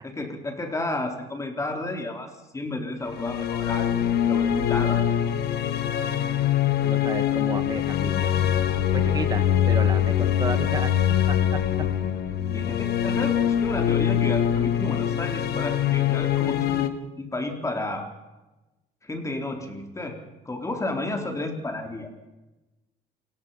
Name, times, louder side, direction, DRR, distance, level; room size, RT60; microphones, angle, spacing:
voice 1, 0.0-3.9 4.2-5.1 12.5-16.9 17.2-18.1 19.0-20.2 20.5-22.3, left 2 dB, 20° left, 3 dB, 3.9 m, -32 dB
sound 1, 3.1-16.9, left 10 dB, 70° left, 1.7 m, -23 dB
voice 2, 6.8-8.4 8.9-10.9 11.3-11.6, right 4 dB, 25° right, 9 dB, 1.8 m, -32 dB
27.0 x 18.5 x 5.8 m, 1.0 s
cardioid pair, 110°, 17 cm